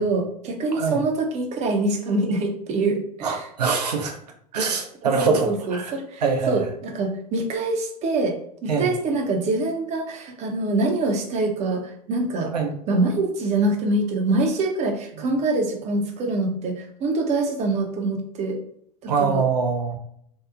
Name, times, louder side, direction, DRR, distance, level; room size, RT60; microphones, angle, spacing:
voice 1, 0.0-3.5 5.1-12.5 12.9-18.6 19.0-19.4, right 2 dB, 35° right, 4 dB, 0.5 m, -25 dB
voice 2, 3.2-4.2 4.5-5.9 6.2-6.6 8.7-8.9 12.5-12.7 15.2-15.3 19.1-19.9, right 5 dB, 80° right, 2 dB, 0.6 m, -24 dB
2.7 x 2.0 x 2.4 m, 0.69 s
hypercardioid pair, 85°, 20 cm